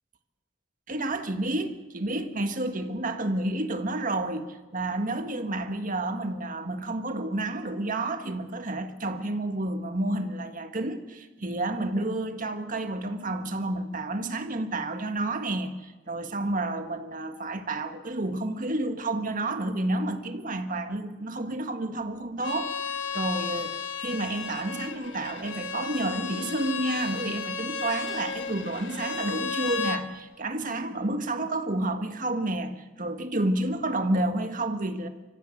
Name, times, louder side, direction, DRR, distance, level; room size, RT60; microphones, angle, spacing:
voice 1, 0.9-32.7 33.0-35.1, right 2 dB, 45° right, 1.7 m, -30 dB
Bowed string instrument, 22.4-30.0, left 5 dB, 75° left, 1.4 m, -33 dB
25.0 x 15.0 x 7.9 m
head